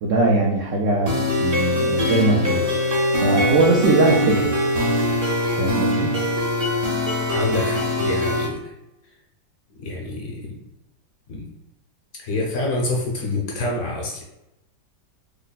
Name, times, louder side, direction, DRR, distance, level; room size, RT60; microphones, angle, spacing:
voice 1, 0.0-4.5 5.5-6.1, right 3 dB, 75° right, -3 dB, 0.7 m, -21 dB
sound 1, 1.1-8.4, left 1 dB, 45° right, 0.8 m, -22 dB
voice 2, 7.3-8.7 9.8-10.6 11.3-11.5 12.2-14.2, left 2 dB, 65° left, -1 dB, 1.0 m, -27 dB
3.3 x 2.1 x 3.8 m, 0.91 s
omnidirectional pair, 1.9 m